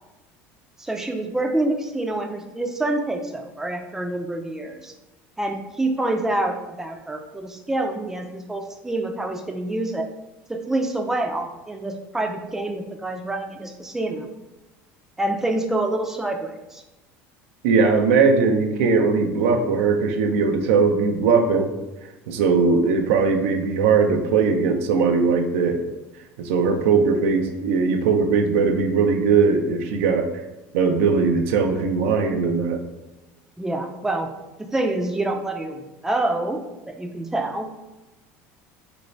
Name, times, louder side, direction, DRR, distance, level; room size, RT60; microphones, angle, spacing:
voice 1, 0.8-4.9 5.4-10.1 10.5-14.3 15.2-16.8 33.6-34.3 34.7-36.6 37.0-37.7, right 2 dB, 5° right, 3 dB, 0.4 m, -26 dB
voice 2, 17.6-21.7 22.3-25.8 26.4-30.3 30.7-32.8, right 5 dB, 85° right, 5 dB, 0.4 m, -19 dB
2.9 x 2.6 x 3.2 m, 1.0 s
supercardioid pair, 100°, 7 cm